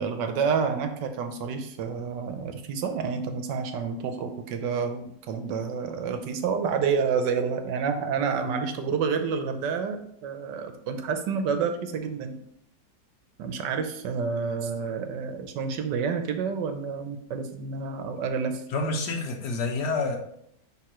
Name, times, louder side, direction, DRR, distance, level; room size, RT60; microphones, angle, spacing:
voice 1, 0.0-12.4 13.4-18.6, right 6 dB, 85° right, 7 dB, 1.4 m, -29 dB
voice 2, 18.7-20.2, left 3 dB, 75° left, 3 dB, 1.6 m, -28 dB
10.5 x 3.6 x 3.0 m, 0.74 s
omnidirectional pair, 1.9 m